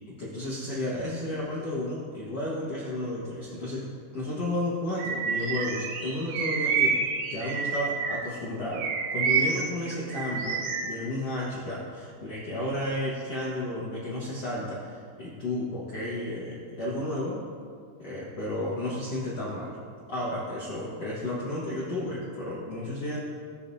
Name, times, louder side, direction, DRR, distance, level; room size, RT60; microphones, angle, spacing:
voice 1, 0.2-3.9 4.1-7.0 7.3-17.4 18.0-19.8 20.1-23.2, left 1 dB, 70° left, -7 dB, 1.4 m, -32 dB
Bird vocalization bird call bird song, 5.0-8.3 8.7-10.9, right 5 dB, 80° right, 2.0 m, -28 dB
22.0 x 7.4 x 2.8 m, 2.2 s
omnidirectional pair, 5.5 m